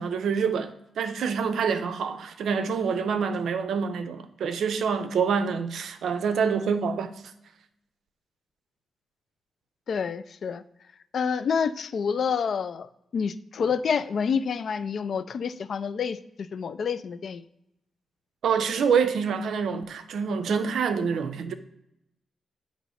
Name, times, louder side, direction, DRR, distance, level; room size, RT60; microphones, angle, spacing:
voice 1, 0.0-7.1 18.4-21.5, right 6 dB, 75° right, 10 dB, 0.5 m, -26 dB
voice 2, 9.9-10.6 11.1-17.4, left 6 dB, 50° left, 13 dB, 0.3 m, -28 dB
8.4 x 3.0 x 5.5 m, 0.83 s
wide cardioid pair, 160°, 0 cm